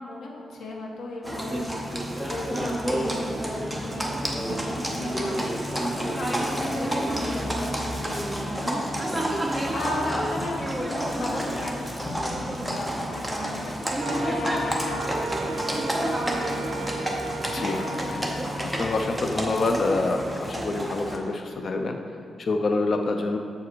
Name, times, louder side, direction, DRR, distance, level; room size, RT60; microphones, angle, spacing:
voice 1, 0.0-18.3, left 2 dB, 85° left, -1 dB, 1.1 m, -37 dB
Livestock farm animals working animals, 1.2-21.2, equal, ahead, 0.7 m, -29 dB
Wind instrument woodwind instrument, 14.0-18.4, right 2 dB, 85° right, 0.6 m, -34 dB
voice 2, 17.5-17.8 18.6-22.0 22.4-23.4, left 3 dB, 45° left, 4 dB, 0.4 m, -26 dB
7.1 x 4.9 x 4.5 m, 2.4 s
wide cardioid pair, 160°, 0 cm